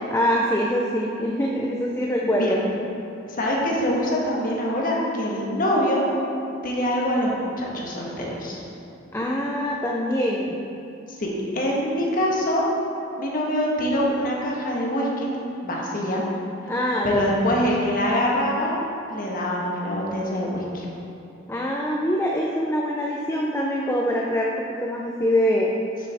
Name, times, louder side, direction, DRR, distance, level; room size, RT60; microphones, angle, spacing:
voice 1, 0.1-2.6 9.1-10.6 16.7-17.3 21.5-24.5 24.8-25.7, equal, 15° left, -1 dB, 0.5 m, -24 dB
voice 2, 2.2-2.6 3.3-6.0 6.6-8.6 11.2-12.6 13.2-15.3 15.6-16.2 17.0-18.7 19.1-20.8, equal, 50° left, -3 dB, 1.4 m, -24 dB
9.8 x 6.7 x 3.5 m, 2.7 s
head